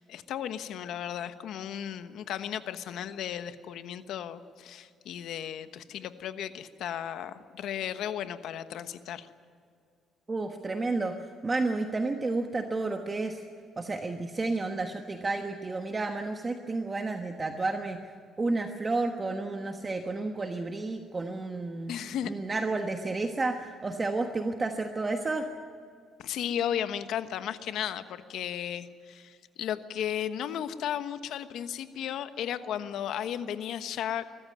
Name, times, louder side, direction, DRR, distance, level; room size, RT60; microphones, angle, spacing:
voice 1, 0.0-9.3 21.9-22.3 26.2-34.3, left 10 dB, 75° left, 10 dB, 1.2 m, -35 dB
voice 2, 10.3-11.1 11.4-13.4 13.8-18.0 18.4-21.9 22.2-25.5, right 3 dB, 25° right, 5 dB, 1.3 m, -31 dB
22.0 x 15.0 x 9.6 m, 2.2 s
cardioid pair, 105°, 0 cm